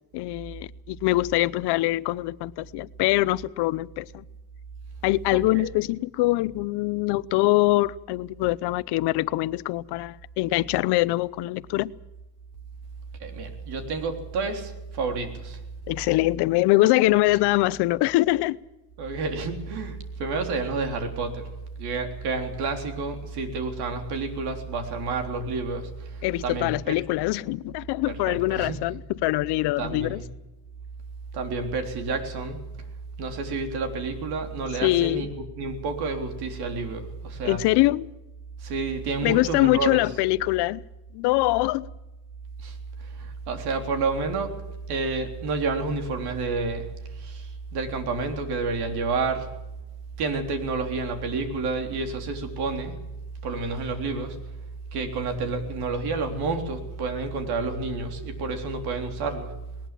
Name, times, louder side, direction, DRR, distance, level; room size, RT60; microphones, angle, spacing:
voice 1, 0.1-4.2 5.0-11.9 15.9-18.6 26.2-30.2 34.8-35.3 37.4-38.1 39.2-40.8 41.1-41.9, left 18 dB, 80° left, 0.8 m, -23 dB
voice 2, 5.3-5.7 13.2-15.6 19.0-21.5 21.8-27.0 28.3-28.8 29.8-30.3 31.3-32.6 33.2-35.3 35.6-37.6 38.6-40.0 42.6-42.8 43.1-44.5 44.9-46.9 47.2-49.5 50.2-53.0 53.4-54.4 54.9-59.5, right 3 dB, 70° right, 3.8 m, -29 dB
20.0 x 19.5 x 7.6 m
cardioid pair, 155°, 40 cm